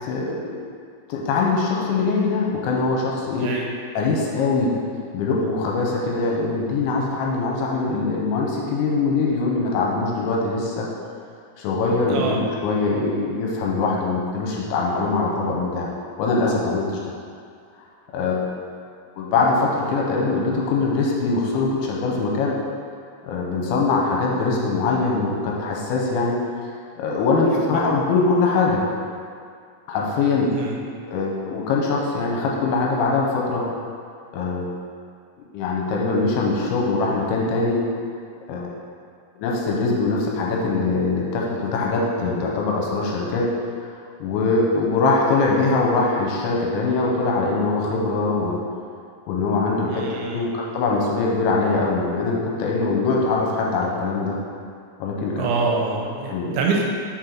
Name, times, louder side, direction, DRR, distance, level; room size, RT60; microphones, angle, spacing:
voice 1, 0.0-0.6 1.1-3.5 4.0-4.7 5.1-10.9 11.6-15.9 16.2-17.0 18.1-18.4 19.2-22.5 23.2-26.4 27.0-28.8 29.9-30.5 31.1-33.6 34.3-34.7 35.5-37.8 38.5-38.7 39.4-43.5 44.2-48.6 49.3-54.3 55.0-55.5 56.3-56.5, left 3 dB, 85° left, -2 dB, 3.0 m, -22 dB
voice 2, 3.3-3.7 12.1-12.4 27.5-27.8 30.4-30.8 49.9-50.5 55.4-56.9, right 4 dB, 90° right, -1 dB, 3.0 m, -26 dB
6.4 x 3.9 x 4.4 m, 2.2 s
omnidirectional pair, 5.3 m